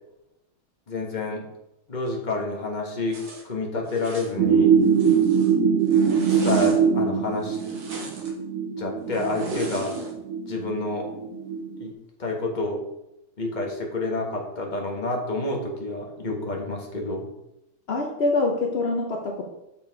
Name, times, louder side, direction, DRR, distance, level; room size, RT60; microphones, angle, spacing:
voice 1, 0.9-1.4 1.9-4.7 6.3-7.6 8.8-9.9 10.5-11.1 11.8-11.9 12.2-12.8 13.4-17.3, left 2 dB, 25° left, 0 dB, 1.2 m, -29 dB
Zipper (clothing), 3.1-3.4 3.9-4.3 4.8-5.5 5.9-6.8 7.4-8.3 9.1-10.1, right 2 dB, 55° right, 1.9 m, -37 dB
sound 1, 4.4-11.9, right 7 dB, 75° right, 0.7 m, -23 dB
voice 2, 17.9-19.4, left 3 dB, 60° left, 1 dB, 0.6 m, -25 dB
6.7 x 5.9 x 4.6 m, 0.88 s
omnidirectional pair, 2.2 m